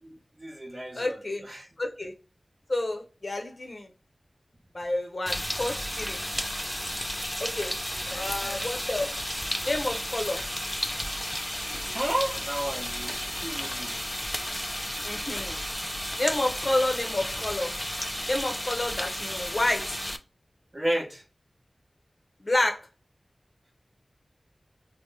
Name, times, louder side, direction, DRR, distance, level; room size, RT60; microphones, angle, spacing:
voice 1, 0.0-1.7 8.1-8.7 11.9-14.0 20.7-21.2, right 1 dB, 40° right, 0.9 m, -33 dB
voice 2, 0.9-1.4 1.8-2.1 2.7-3.9 4.7-6.2 7.4-7.7 8.1-9.1 9.6-10.4 15.0-15.6 16.2-17.7 18.3-20.0 22.4-22.8, left 2 dB, 50° left, 0.7 m, -29 dB
sound 1, 5.3-20.2, equal, 10° left, 0.3 m, -33 dB
2.9 x 2.0 x 3.2 m
wide cardioid pair, 60°, 0 cm